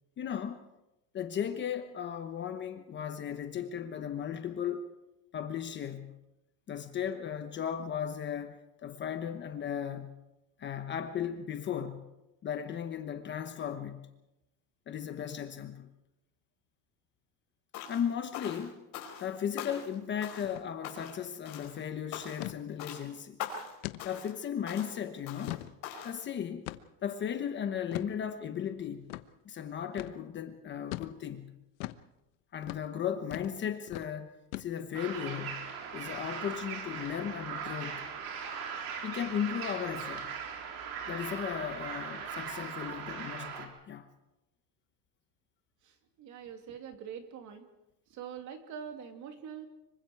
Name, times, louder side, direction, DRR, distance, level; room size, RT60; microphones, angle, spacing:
voice 1, 0.2-0.6 1.1-4.9 5.3-6.2 6.7-10.2 10.6-12.1 12.4-14.1 14.9-15.9 17.9-18.9 19.2-23.4 24.0-25.7 26.0-26.7 27.0-29.1 29.4-31.6 32.5-38.1 39.0-40.3 41.1-44.1, left 8 dB, 25° left, 1.0 m, -36 dB
sound 1, 17.7-18.1 18.3-19.3 19.6-20.0 20.2-20.6 20.8-21.2 21.5-21.8 22.1-22.5 22.8-23.0 23.4-23.7 24.0-24.4 24.7-24.9 25.3-25.6 25.8-26.2, left 8 dB, 45° left, 5.0 m, -42 dB
sound 2, 20.4-20.7 21.0-21.1 21.4-21.7 22.4-22.6 23.1-23.2 23.8-24.0 24.5-24.6 25.2-25.7 26.7-27.0 27.9-28.1 29.1-29.3 30.0-30.2 30.9-31.1 31.8-32.0 32.6-32.9 33.3-33.6 33.9-34.1 34.5-35.0, left 19 dB, 75° left, 1.1 m, -40 dB
sound 3, 34.9-43.7, right 6 dB, 75° right, 4.3 m, -39 dB
voice 2, 46.2-47.7 48.1-49.7, right 8 dB, 40° right, 2.5 m, -44 dB
25.5 x 24.0 x 4.7 m
cardioid pair, 165°, 45 cm